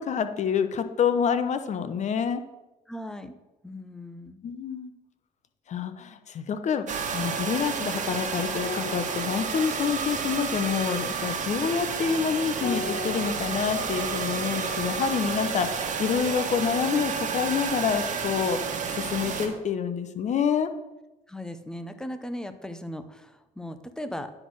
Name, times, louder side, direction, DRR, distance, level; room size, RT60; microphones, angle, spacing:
voice 1, 0.0-2.4 4.4-4.9 5.7-18.6 18.9-20.7, left 7 dB, 45° left, 9 dB, 0.8 m, -27 dB
voice 2, 2.9-3.4 3.6-4.4 21.3-24.3, left 1 dB, 5° left, 10 dB, 0.7 m, -37 dB
sound 1, 6.9-19.5, right 6 dB, 45° right, 1.5 m, -31 dB
sound 2, 8.6-17.3 17.6-17.8, left 3 dB, 70° left, 0.8 m, -42 dB
9.9 x 4.2 x 6.1 m, 1.0 s
cardioid pair, 110°, 17 cm